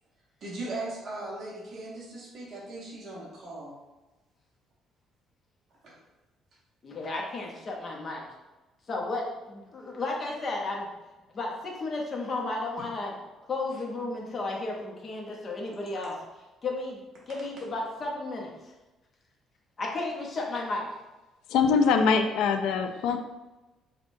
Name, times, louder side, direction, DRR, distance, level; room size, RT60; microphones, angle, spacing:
voice 1, 0.4-3.7 5.8-5.9 12.8-12.9 13.7-13.8, right 2 dB, 40° right, -6 dB, 0.9 m, -38 dB
voice 2, 6.8-8.2 8.9-10.9 11.3-13.1 13.5-16.1 16.6-17.0 17.3-18.5 19.8-20.9, left 2 dB, 30° left, -1 dB, 0.6 m, -33 dB
voice 3, 21.5-23.2, left 5 dB, 85° left, 6 dB, 0.3 m, -23 dB
5.1 x 2.2 x 2.5 m, 1.1 s
cardioid pair, 180°, 0 cm